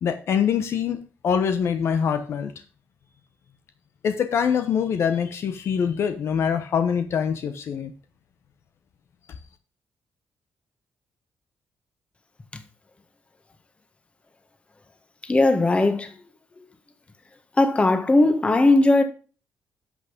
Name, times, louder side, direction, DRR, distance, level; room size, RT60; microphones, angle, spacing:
voice 1, 0.0-2.5 4.0-7.9, left 7 dB, 65° left, 1.1 m, -24 dB
voice 2, 15.2-16.1 17.6-19.0, left 2 dB, 25° left, 1.7 m, -18 dB
11.5 x 6.3 x 5.2 m
cardioid pair, 95°, 5 cm